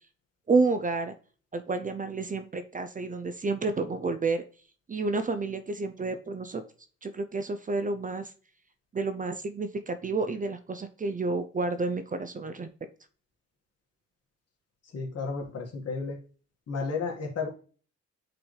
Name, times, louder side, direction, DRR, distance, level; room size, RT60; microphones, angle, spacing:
voice 1, 0.5-1.1 1.5-4.4 4.9-6.6 7.0-8.3 8.9-12.7, right 3 dB, 25° right, 9 dB, 0.6 m, -30 dB
voice 2, 14.9-16.2 16.7-17.5, left 4 dB, 55° left, 1 dB, 2.0 m, -32 dB
8.7 x 4.0 x 3.3 m, 0.39 s
cardioid pair, 90°, 30 cm